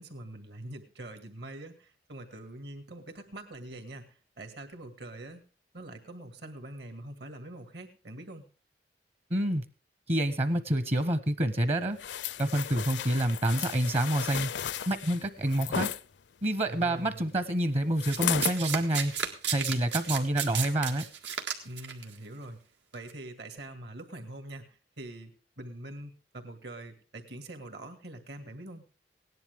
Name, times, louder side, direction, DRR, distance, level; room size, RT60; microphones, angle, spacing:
voice 1, 0.0-5.4 5.7-8.4 16.7-17.4 21.6-22.6 22.9-28.9, right 1 dB, 65° right, 7 dB, 2.2 m, -44 dB
voice 2, 9.3-9.6 10.1-12.0 12.4-14.5 14.9-15.9 16.4-19.1 19.5-21.0, right 1 dB, 35° right, 12 dB, 0.9 m, -27 dB
sound 1, 12.0-16.0 18.0-18.6 19.1-19.3, left 9 dB, 80° left, 0.5 m, -34 dB
Domestic sounds home sounds, 18.1-22.0 22.9-23.1, right 8 dB, 90° right, 2.0 m, -33 dB
18.0 x 10.5 x 3.6 m, 0.36 s
head